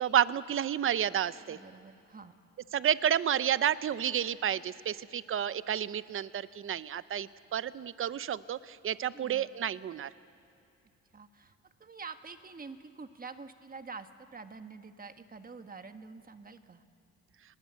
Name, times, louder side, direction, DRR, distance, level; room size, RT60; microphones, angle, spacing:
voice 1, 0.0-1.6 2.7-10.1, right 9 dB, 45° right, 16 dB, 0.7 m, -30 dB
voice 2, 1.4-2.3 9.1-9.5 11.1-16.8, right 4 dB, 30° right, 8 dB, 1.6 m, -47 dB
29.5 x 20.0 x 8.3 m, 2.6 s
cardioid pair, 90°, 30 cm